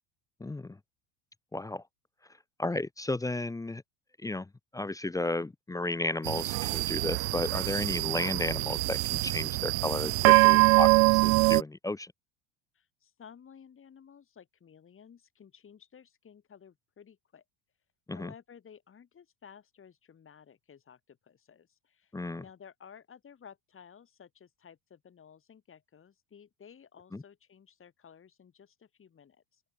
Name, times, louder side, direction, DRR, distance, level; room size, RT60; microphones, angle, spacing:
voice 1, 0.4-0.8 1.5-1.8 2.6-3.8 4.2-12.1 18.1-18.3 22.1-22.4 27.1-27.2, left 2 dB, 10° left, 0.8 m, -33 dB
sound 1, 6.2-11.6, right 26 dB, 85° right, 0.6 m, -24 dB
voice 2, 12.7-17.4 18.1-29.6, left 7 dB, 30° left, 7.9 m, -55 dB
open air
supercardioid pair, 120°, 43 cm